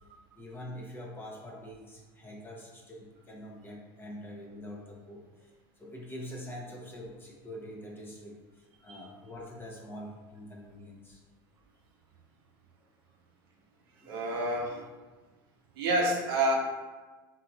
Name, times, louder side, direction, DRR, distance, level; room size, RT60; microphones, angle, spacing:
voice 1, 0.3-11.2 14.0-14.2, equal, 15° left, -2 dB, 0.8 m, -45 dB
voice 2, 14.0-14.8 15.8-16.5, right 1 dB, 85° right, 0 dB, 0.6 m, -28 dB
3.7 x 2.7 x 2.4 m, 1.3 s
supercardioid pair, 100°, 12 cm